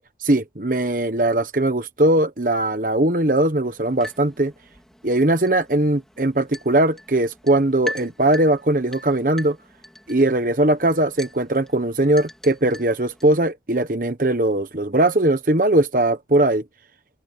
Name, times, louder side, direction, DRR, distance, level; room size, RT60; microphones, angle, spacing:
voice 1, 0.2-4.5 5.0-9.6 10.1-16.6, right 1 dB, 50° right, 1.2 m, -20 dB
sound 1, 3.6-13.4, equal, 5° left, 4.0 m, -41 dB
open air
head